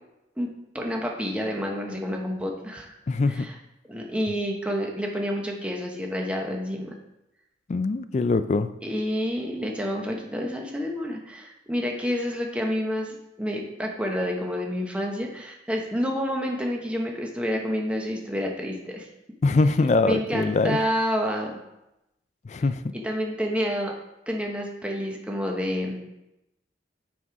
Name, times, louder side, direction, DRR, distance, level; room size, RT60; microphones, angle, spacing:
voice 1, 0.4-2.9 3.3-3.5 3.9-6.9 8.8-19.1 20.0-21.6 22.9-23.9 24.3-26.0, equal, 5° right, 0 dB, 0.9 m, -29 dB
voice 2, 3.1-3.5 7.7-8.7 19.4-20.8 22.4-22.9, left 3 dB, 40° left, 12 dB, 0.3 m, -23 dB
6.1 x 5.4 x 4.7 m, 0.90 s
head